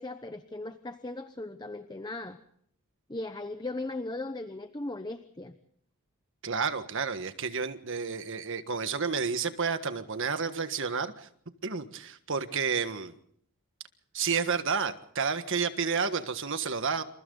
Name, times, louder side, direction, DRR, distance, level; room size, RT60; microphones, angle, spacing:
voice 1, 0.0-2.4 3.1-5.5, left 2 dB, 20° left, 9 dB, 0.9 m, -38 dB
voice 2, 6.4-11.3 11.6-13.1 14.1-17.0, right 5 dB, 60° right, 9 dB, 1.5 m, -30 dB
28.0 x 27.5 x 4.0 m, 0.66 s
head